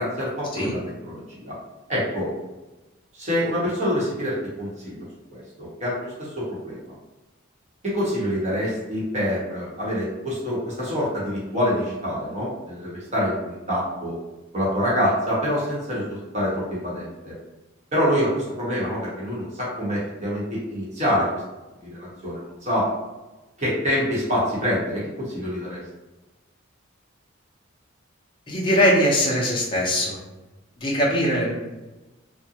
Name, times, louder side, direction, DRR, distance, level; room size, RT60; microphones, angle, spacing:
voice 1, 0.0-1.5 1.9-2.3 3.1-5.0 5.3-6.8 7.8-14.1 14.5-17.3 17.9-21.4 21.8-22.9 23.6-25.8, equal, 35° right, -7 dB, 0.9 m, -26 dB
voice 2, 28.5-30.2 30.8-31.5, equal, 25° left, -4 dB, 0.6 m, -21 dB
2.4 x 2.1 x 2.8 m, 1.1 s
head